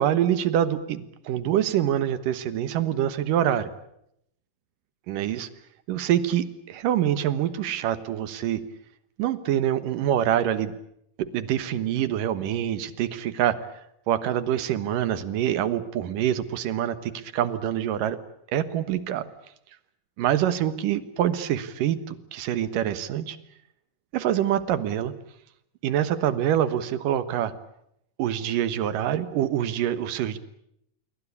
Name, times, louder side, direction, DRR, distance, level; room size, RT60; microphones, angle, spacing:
voice 1, 0.0-3.7 5.1-5.5 5.9-8.6 9.2-10.7 11.2-13.6 14.1-18.2 18.5-19.3 20.2-23.4 24.1-25.1 25.8-27.5 28.2-30.4, right 11 dB, 90° right, 13 dB, 2.9 m, -25 dB
27.5 x 23.0 x 8.4 m, 0.76 s
omnidirectional pair, 3.8 m